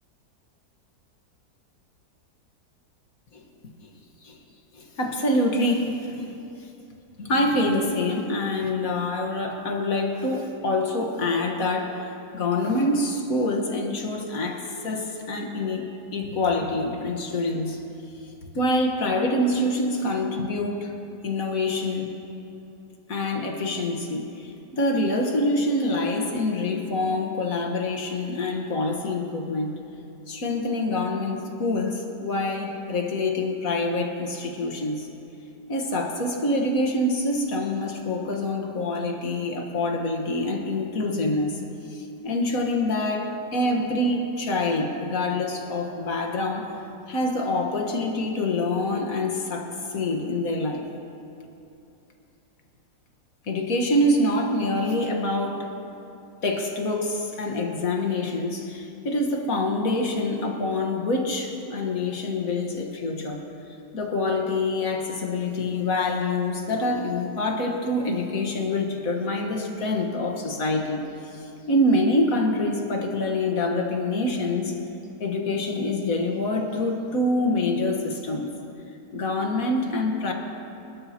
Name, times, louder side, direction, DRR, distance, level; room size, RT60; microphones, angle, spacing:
voice 1, 4.7-6.4 7.2-17.8 18.6-20.9 21.2-22.1 23.1-29.8 30.3-35.1 35.7-41.6 41.9-46.7 47.1-50.9 53.4-55.7 56.4-63.4 63.9-71.0 71.3-74.8 75.2-78.5 79.1-80.3, left 2 dB, 55° left, 2 dB, 1.8 m, -26 dB
27.5 x 12.5 x 2.9 m, 2.8 s
omnidirectional pair, 1.8 m